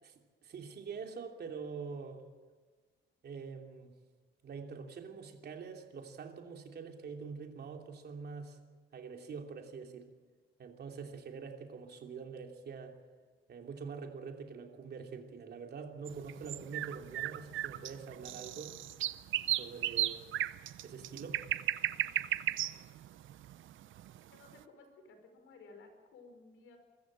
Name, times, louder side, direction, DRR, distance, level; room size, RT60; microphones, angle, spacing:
voice 1, 0.0-2.2 3.2-3.9 4.4-8.6 8.9-10.1 10.6-12.9 13.5-18.7 19.4-20.3 20.8-21.4, right 5 dB, 50° right, 3 dB, 3.0 m, -45 dB
sound 1, 16.1-24.3, right 13 dB, 70° right, 0.7 m, -35 dB
voice 2, 24.3-26.8, left 3 dB, 75° left, 5 dB, 4.8 m, -56 dB
23.5 x 14.0 x 9.0 m, 1.4 s
cardioid pair, 120°, 21 cm